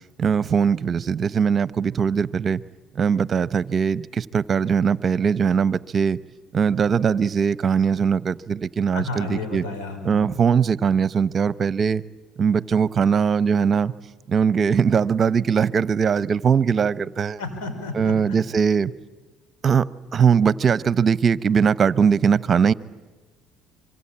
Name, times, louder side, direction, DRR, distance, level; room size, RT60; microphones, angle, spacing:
voice 1, 0.2-2.6 2.9-6.2 6.5-9.6 10.0-12.0 12.4-13.9 14.3-17.4 17.9-18.9 19.6-19.9 20.1-22.7, right 6 dB, 40° right, 18 dB, 0.7 m, -20 dB
voice 2, 8.9-10.3 17.4-18.4, left 3 dB, 80° left, 7 dB, 5.4 m, -32 dB
25.5 x 24.0 x 8.7 m, 1.2 s
supercardioid pair, 80°, 0 cm